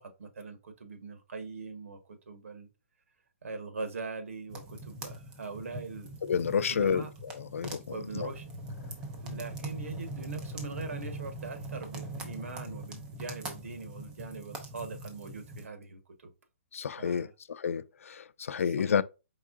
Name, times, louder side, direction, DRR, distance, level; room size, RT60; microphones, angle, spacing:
voice 1, 0.0-2.7 3.4-6.1 6.7-7.1 7.9-8.5 9.2-16.3 17.0-17.3 18.6-19.0, right 4 dB, 85° right, 1.3 m, -41 dB
sound 1, 4.5-15.7, right 1 dB, 10° right, 0.6 m, -42 dB
voice 2, 6.2-7.1 7.5-8.3 16.7-19.0, left 7 dB, 85° left, 0.4 m, -30 dB
4.7 x 3.6 x 2.5 m
hypercardioid pair, 170°, 7 cm